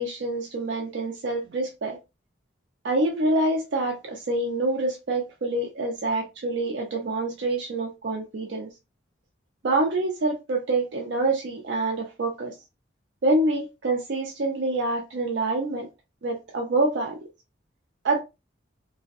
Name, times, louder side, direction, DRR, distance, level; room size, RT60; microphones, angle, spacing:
voice 1, 0.0-2.0 2.8-8.7 9.6-12.5 13.2-15.9 16.2-17.2 18.0-18.2, right 2 dB, 65° right, 0.4 m, -26 dB
2.5 x 2.1 x 2.4 m
head